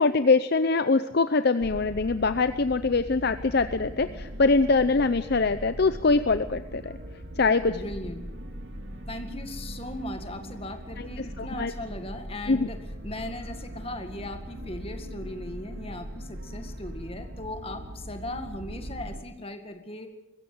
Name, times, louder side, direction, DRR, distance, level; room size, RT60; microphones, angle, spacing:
voice 1, 0.0-7.0 7.4-7.8 11.0-11.7 12.5-12.7, left 3 dB, 50° left, 12 dB, 0.6 m, -23 dB
sound 1, 1.6-19.2, equal, 55° right, 2.5 m, -40 dB
voice 2, 7.6-8.2 9.1-20.1, left 1 dB, 25° left, 6 dB, 2.0 m, -38 dB
22.0 x 16.0 x 7.9 m, 1.0 s
head